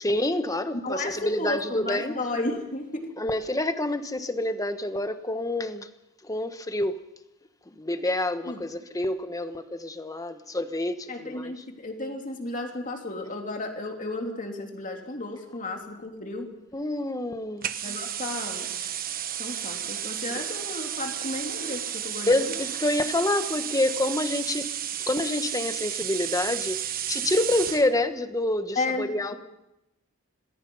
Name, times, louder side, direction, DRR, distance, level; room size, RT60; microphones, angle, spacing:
voice 1, 0.0-2.2 3.2-5.9 6.2-7.0 7.7-11.6 16.7-17.6 22.3-24.7 25.1-26.8 27.1-29.3, left 1 dB, 15° left, 1.1 m, -27 dB
voice 2, 0.8-3.1 8.5-8.6 11.1-16.5 17.8-18.9 19.4-22.5 28.7-29.3, left 2 dB, 35° left, 3.1 m, -33 dB
sound 1, 17.6-27.9, right 10 dB, 40° right, 1.2 m, -32 dB
27.0 x 20.5 x 5.5 m
head